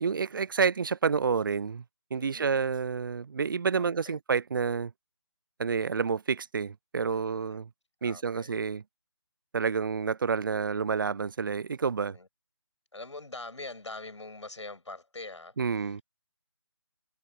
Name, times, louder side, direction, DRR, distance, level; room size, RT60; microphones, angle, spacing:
voice 1, 0.0-1.8 2.1-4.9 5.6-7.7 8.0-8.8 9.5-12.2 15.6-16.0, right 5 dB, 45° right, 0.7 m, -29 dB
voice 2, 2.2-2.6 3.7-4.2 7.1-7.6 8.0-8.6 12.0-12.3 12.9-16.0, left 2 dB, 75° left, 7.8 m, -44 dB
figure-of-eight pair, 155°, 15 cm